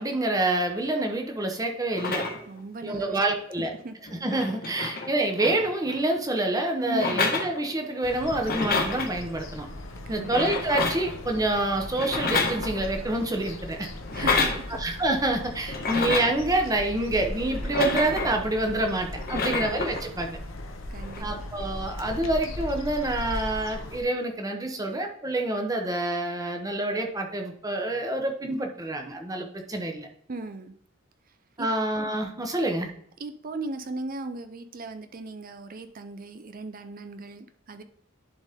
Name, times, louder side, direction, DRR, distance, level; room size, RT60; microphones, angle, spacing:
voice 1, 0.0-2.2 2.8-3.7 4.1-9.7 10.1-13.9 14.2-14.3 14.8-20.4 21.2-30.1 31.6-32.9, right 2 dB, 20° right, 3 dB, 1.1 m, -27 dB
sound 1, 1.9-2.6 3.7-3.8 4.1-6.0 6.9-8.0 8.3-9.1 10.2-11.2 11.9-13.0 14.0-14.6 15.7-16.4 17.5-18.4 19.1-20.0 21.0-21.2, left 4 dB, 50° left, 1.3 m, -29 dB
voice 2, 2.5-3.4 3.8-3.9 6.9-7.3 10.1-10.4 14.1-14.6 15.7-15.8 19.3-19.5 20.9-21.5 30.3-30.7 31.6-31.7 33.2-37.8, right 2 dB, 45° right, 9 dB, 0.6 m, -37 dB
sound 2, 8.0-24.0, left 1 dB, 70° left, 1.0 m, -38 dB
10.5 x 4.1 x 3.6 m, 0.66 s
head